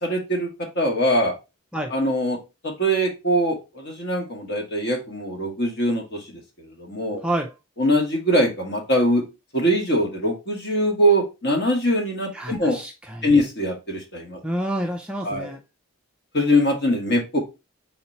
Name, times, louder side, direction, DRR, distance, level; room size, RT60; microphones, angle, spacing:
voice 1, 0.0-1.3 1.9-2.4 2.6-7.2 7.8-9.2 9.5-12.8 13.2-14.4 15.2-15.5 16.3-17.4, equal, 50° left, 1.3 m, -22 dB
voice 2, 12.3-13.3 14.4-15.6, right 1 dB, 5° right, 0.3 m, -28 dB
3.9 x 2.9 x 4.1 m
head